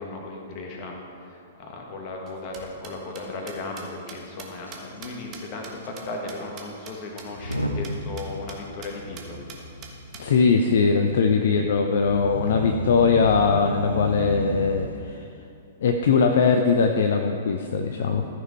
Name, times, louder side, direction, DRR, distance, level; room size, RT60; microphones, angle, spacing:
voice 1, 0.0-9.4, left 2 dB, 35° left, 0 dB, 1.8 m, -36 dB
sound 1, 2.3-6.9 7.2-7.3 7.5-7.6 7.8-7.9 8.2-8.6 8.8-8.9 9.2-10.2, right 7 dB, 30° right, 1.4 m, -43 dB
Motor vehicle (road) / Engine starting / Accelerating revving vroom, 4.7-4.8 5.0-5.2 5.8-5.9 7.2-15.0, equal, 90° left, 0.8 m, -33 dB
voice 2, 10.2-15.2 15.8-18.3, left 5 dB, 55° left, 4 dB, 0.6 m, -21 dB
14.0 x 6.1 x 4.5 m, 2.4 s
figure-of-eight pair, 105°, 0 cm